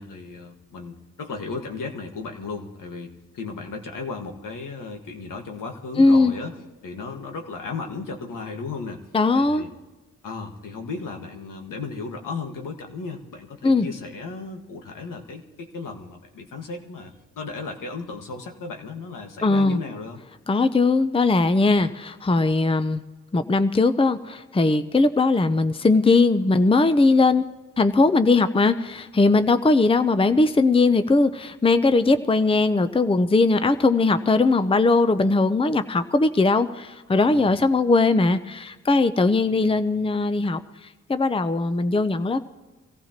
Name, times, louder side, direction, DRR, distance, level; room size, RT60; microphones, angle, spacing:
voice 1, 0.0-6.5 6.8-9.0 9.3-9.7 10.2-20.2 37.3-37.6, left 4 dB, 75° left, 3 dB, 1.7 m, -35 dB
voice 2, 6.0-6.3 9.1-9.6 13.6-13.9 19.4-19.8 20.5-23.0 23.3-27.4 27.8-40.6 41.1-42.4, left 3 dB, 15° left, 11 dB, 0.7 m, -19 dB
24.0 x 15.0 x 3.0 m, 1.2 s
cardioid pair, 55°, 32 cm